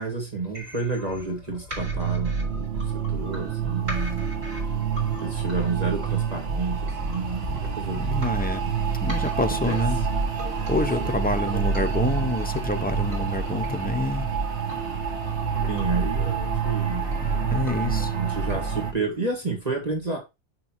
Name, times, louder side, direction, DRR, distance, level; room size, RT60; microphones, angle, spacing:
voice 1, 0.0-4.3 5.2-8.0 8.6-8.8 9.5-9.8 11.0-11.1 15.7-17.1 18.1-20.2, right 3 dB, 35° right, 1.8 m, -30 dB
sound 1, 0.5-18.5, left 1 dB, 55° right, 3.9 m, -42 dB
sound 2, 1.8-18.9, right 6 dB, 75° right, 1.4 m, -27 dB
voice 2, 8.0-8.6 9.0-10.0 10.7-14.3 17.0-18.1, left 2 dB, 15° left, 0.3 m, -27 dB
6.5 x 6.1 x 2.9 m
omnidirectional pair, 1.2 m